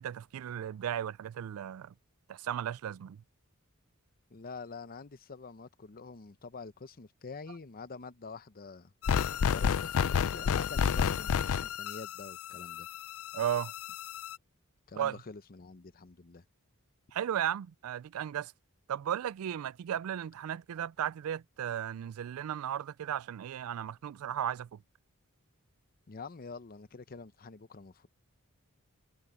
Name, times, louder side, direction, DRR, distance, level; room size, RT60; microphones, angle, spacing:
voice 1, 0.0-1.9 2.3-3.2 13.3-13.7 15.0-15.2 17.1-18.5 18.9-24.8, right 10 dB, 70° right, 0.3 m, -35 dB
voice 2, 4.3-8.9 9.5-12.9 14.9-16.4 26.1-28.1, left 4 dB, 45° left, 0.7 m, -46 dB
sound 1, 9.0-14.4, left 7 dB, 70° left, 0.4 m, -31 dB
head